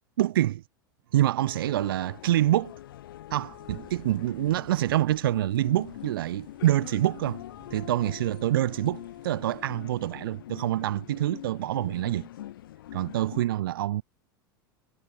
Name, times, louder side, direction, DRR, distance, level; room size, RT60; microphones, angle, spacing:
voice 1, 0.2-0.6 1.1-2.7 3.3-7.4 7.7-12.3 12.9-14.0, right 13 dB, 75° right, 0.4 m, -26 dB
sound 1, 1.4-13.4, left 13 dB, 70° left, 3.8 m, -44 dB
sound 2, 3.5-9.7, right 14 dB, 45° right, 4.3 m, -54 dB
hypercardioid pair, 85°, 12 cm